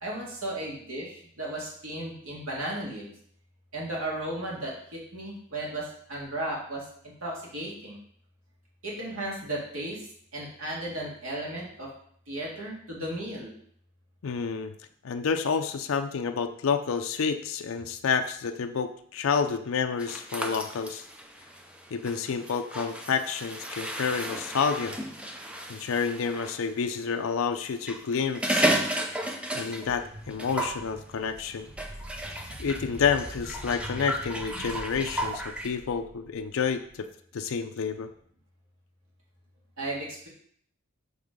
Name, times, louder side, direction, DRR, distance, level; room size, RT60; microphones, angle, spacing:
voice 1, 0.0-3.1 3.7-6.8 7.2-8.0 8.8-10.1 10.3-11.9 12.3-13.6 39.8-40.3, right 1 dB, 75° right, -3 dB, 2.1 m, -35 dB
voice 2, 14.2-14.7 15.0-21.0 21.9-25.0 25.7-28.7 29.5-31.7 32.6-37.1 37.3-38.1, left 6 dB, 70° left, 7 dB, 0.4 m, -29 dB
Diarrhea Sounds, 20.0-26.6 27.7-30.0 30.3-30.8 31.8-35.7, right 1 dB, 5° right, 0.5 m, -33 dB
sound 1, 29.8-36.9, equal, 20° right, 1.4 m, -44 dB
7.0 x 3.5 x 5.1 m, 0.62 s
head